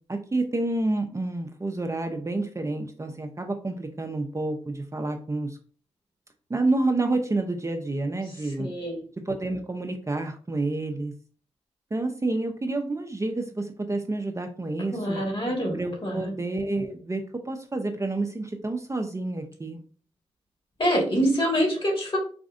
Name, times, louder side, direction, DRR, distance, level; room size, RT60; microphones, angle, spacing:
voice 1, 0.1-5.6 6.5-8.7 9.3-11.1 11.9-15.2 15.7-19.8, right 2 dB, 25° right, 4 dB, 0.5 m, -29 dB
voice 2, 8.6-9.0 14.9-16.3 20.8-22.2, equal, 45° left, 0 dB, 1.7 m, -25 dB
4.1 x 2.5 x 2.5 m, 0.42 s
cardioid pair, 45°, 12 cm